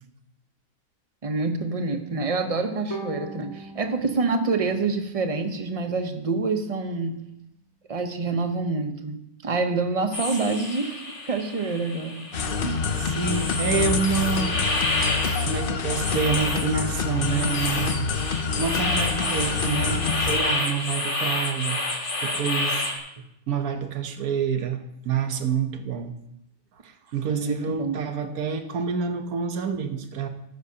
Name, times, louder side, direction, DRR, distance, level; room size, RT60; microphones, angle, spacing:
voice 1, 1.2-7.3 7.9-12.3 12.6-12.9 27.3-28.0, right 3 dB, 30° right, 7 dB, 0.7 m, -27 dB
Bowed string instrument, 2.9-6.0, right 2 dB, 15° left, 2.1 m, -41 dB
sound 1, 10.1-23.0, left 2 dB, 35° left, 1.7 m, -29 dB
sound 2, 12.3-20.4, left 5 dB, 50° left, 0.7 m, -27 dB
voice 2, 13.0-14.9 15.4-22.9 23.5-26.2 26.8-30.3, right 6 dB, 80° right, 7 dB, 1.4 m, -28 dB
13.5 x 10.5 x 2.8 m, 0.80 s
omnidirectional pair, 1.5 m